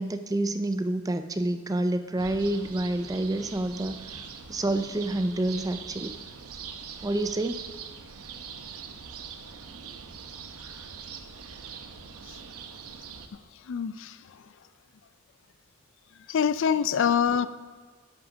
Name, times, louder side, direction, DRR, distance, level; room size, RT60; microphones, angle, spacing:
voice 1, 0.0-4.2 4.5-6.2 7.0-7.6, right 1 dB, 15° right, 9 dB, 0.4 m, -28 dB
sound 1, 2.2-13.3, right 6 dB, 90° right, 0.8 m, -42 dB
voice 2, 13.7-14.2 16.3-17.5, left 7 dB, 55° left, 15 dB, 0.3 m, -24 dB
9.8 x 6.4 x 6.1 m, 1.4 s
head